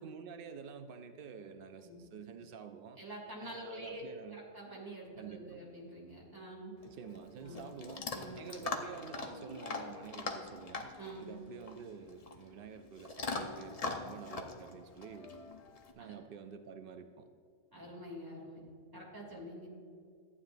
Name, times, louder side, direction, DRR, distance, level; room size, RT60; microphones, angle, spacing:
voice 1, 0.0-3.0 3.4-4.5 5.2-5.6 6.8-8.1 8.4-10.9 11.2-15.4 15.9-17.2, right 6 dB, 85° right, 7 dB, 0.4 m, -49 dB
voice 2, 3.0-4.0 4.3-6.8 7.4-7.7 8.1-8.5 11.0-11.3 16.0-16.1 17.7-18.6 18.9-19.7, right 1 dB, 15° right, -4 dB, 2.5 m, -47 dB
Chewing mastication / Dog, 6.8-15.9, left 3 dB, 40° left, 0.5 m, -42 dB
14.0 x 9.5 x 2.6 m, 2.3 s
omnidirectional pair, 1.6 m